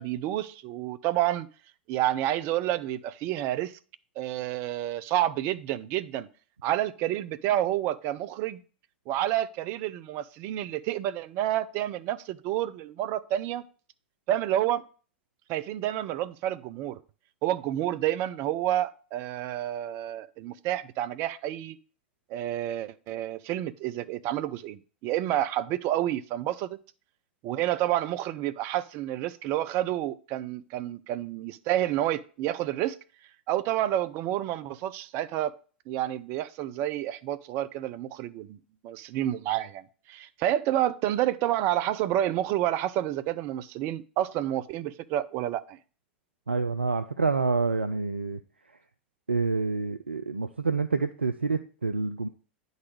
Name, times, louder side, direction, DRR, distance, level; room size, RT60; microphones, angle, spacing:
voice 1, 0.0-1.5 1.9-3.7 4.2-6.3 6.6-8.6 9.1-13.6 14.3-14.8 15.5-17.0 17.4-21.8 22.3-26.8 27.4-33.0 33.5-35.5 35.9-38.6 38.8-45.8, right 13 dB, 45° right, 0.6 m, -29 dB
voice 2, 46.5-48.4 49.3-52.3, right 4 dB, 90° right, 0.4 m, -27 dB
9.7 x 4.1 x 4.7 m
figure-of-eight pair, 90°, 6 cm